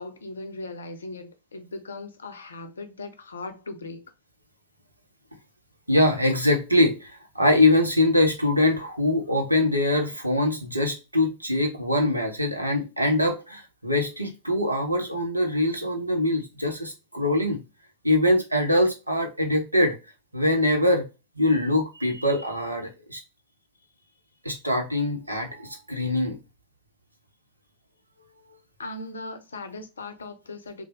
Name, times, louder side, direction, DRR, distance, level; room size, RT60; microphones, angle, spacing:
voice 1, 0.0-4.1 28.8-30.9, left 2 dB, 70° left, 0.5 m, -38 dB
voice 2, 5.9-17.6 18.0-20.0 20.3-21.0 21.4-23.2 24.4-26.4, left 1 dB, 85° right, 0.7 m, -23 dB
3.1 x 2.1 x 2.8 m
figure-of-eight pair, 90°, 0 cm